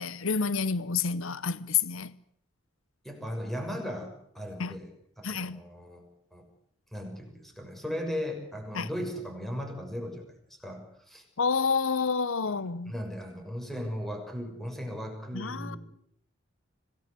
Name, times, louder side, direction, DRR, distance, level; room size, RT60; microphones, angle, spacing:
voice 1, 0.0-2.1 4.6-4.8 5.2-5.6 8.7-8.9 11.4-12.9 15.3-15.8, left 5 dB, 80° left, 0.9 m, -29 dB
voice 2, 3.0-6.5 6.9-10.3 10.6-11.2 12.6-15.8, equal, ahead, 6.2 m, -37 dB
26.0 x 18.5 x 8.2 m
head